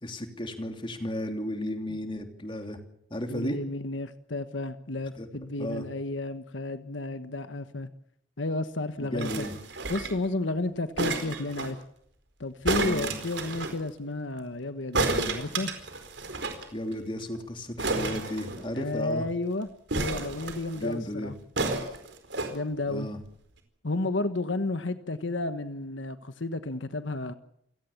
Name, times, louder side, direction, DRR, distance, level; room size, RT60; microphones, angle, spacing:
voice 1, 0.0-2.8 3.1-3.6 5.2-5.3 5.5-5.9 9.0-9.5 12.8-13.1 16.7-19.3 20.7-21.3 22.9-23.2, left 1 dB, 25° left, 3.0 m, -34 dB
voice 2, 3.3-7.9 8.4-9.4 9.9-11.8 12.4-15.7 18.7-21.3 22.5-23.1 23.8-27.3, left 2 dB, 80° left, 1.3 m, -32 dB
sound 1, 9.2-10.3 11.0-11.7 12.6-13.8 14.9-16.6 16.9-17.0 17.2-17.4 17.8-19.0 19.9-20.8 21.6-22.5 23.3-23.4, right 3 dB, 70° right, 4.5 m, -31 dB
28.5 x 17.5 x 7.3 m
head